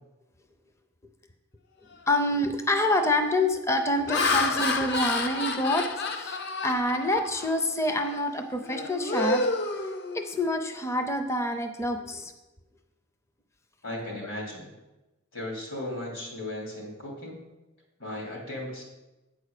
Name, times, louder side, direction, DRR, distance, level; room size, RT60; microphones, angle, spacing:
Laughter, 2.0-2.3 2.8-3.1 3.7-7.6 8.0-8.2 8.6-10.6, left 3 dB, 50° left, 0.6 m, -30 dB
voice 1, 2.1-9.5 9.7-9.9 10.1-12.3, left 1 dB, 15° left, 6 dB, 0.5 m, -27 dB
voice 2, 13.8-14.7 15.3-17.5 18.0-18.8, left 1 dB, 75° left, -2 dB, 2.9 m, -36 dB
8.7 x 4.8 x 6.6 m, 1.1 s
head